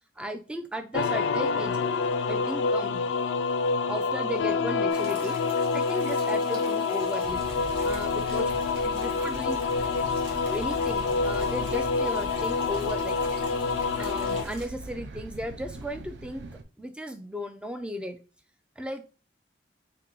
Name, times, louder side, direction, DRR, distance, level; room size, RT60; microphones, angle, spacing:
voice 1, 0.2-1.8 2.3-3.0 3.9-5.4 5.7-7.4 7.8-8.5 8.8-9.6 10.5-13.2 14.0-16.5 16.8-18.2 18.8-19.0, equal, 5° right, 7 dB, 0.3 m, -35 dB
sound 1, 0.9-14.4, left 4 dB, 85° left, 0.3 m, -27 dB
sound 2, 4.9-14.7, right 3 dB, 90° right, 1.5 m, -45 dB
sound 3, 7.2-16.6, right 2 dB, 75° right, 0.4 m, -42 dB
3.3 x 2.9 x 3.7 m, 0.35 s
head